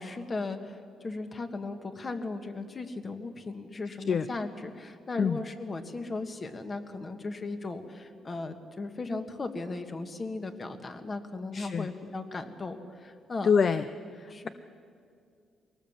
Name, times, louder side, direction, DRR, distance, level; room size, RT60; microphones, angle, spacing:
voice 1, 0.0-13.5 14.3-14.5, left 3 dB, 35° left, 7 dB, 1.6 m, -37 dB
voice 2, 11.5-11.9 13.4-13.9 14.1-14.5, left 6 dB, 50° left, 11 dB, 0.6 m, -26 dB
22.5 x 18.5 x 7.4 m, 2.4 s
cardioid pair, 90°, 0 cm